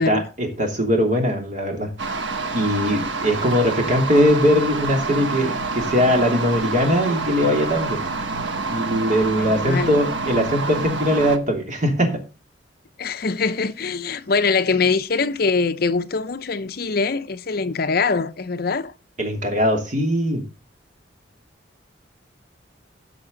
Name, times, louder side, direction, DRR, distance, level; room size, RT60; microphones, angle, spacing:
voice 1, 0.0-1.9 2.5-8.0 8.7-12.1 19.2-20.4, equal, 40° right, 3.1 m, -20 dB
sound 1, 2.0-11.4, right 3 dB, 75° right, 1.3 m, -27 dB
voice 2, 9.4-10.0 13.0-18.9, left 4 dB, 55° left, 0.7 m, -23 dB
17.0 x 6.0 x 3.8 m
head